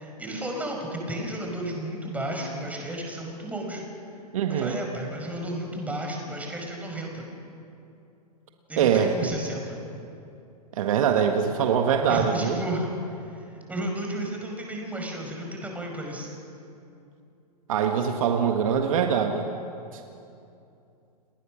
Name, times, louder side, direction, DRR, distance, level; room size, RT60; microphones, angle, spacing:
voice 1, 0.0-3.8 4.5-7.3 8.7-9.8 12.1-16.3, right 1 dB, 5° right, 1 dB, 5.4 m, -33 dB
voice 2, 4.3-4.8 8.8-9.1 10.8-12.6 17.7-19.5 19.9-20.0, right 7 dB, 55° right, 4 dB, 1.7 m, -23 dB
30.0 x 20.0 x 6.3 m, 2.7 s
figure-of-eight pair, 110°, 20 cm